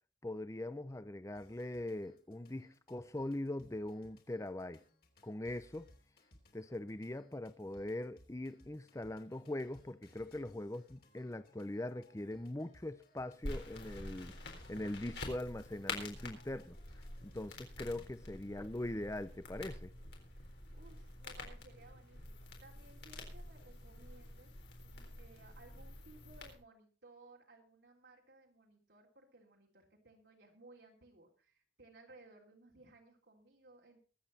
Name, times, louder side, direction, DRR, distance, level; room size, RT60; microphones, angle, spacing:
voice 1, 0.2-4.8 5.2-5.9 6.5-16.8 17.2-19.9, left 1 dB, 15° left, 0.6 m, -42 dB
sound 1, 1.3-18.1, left 1 dB, 55° left, 3.1 m, -65 dB
sound 2, 13.4-26.5, left 2 dB, 80° left, 4.0 m, -48 dB
voice 2, 20.7-24.5 24.8-34.0, right 2 dB, 80° right, 3.3 m, -60 dB
22.5 x 8.1 x 4.1 m
head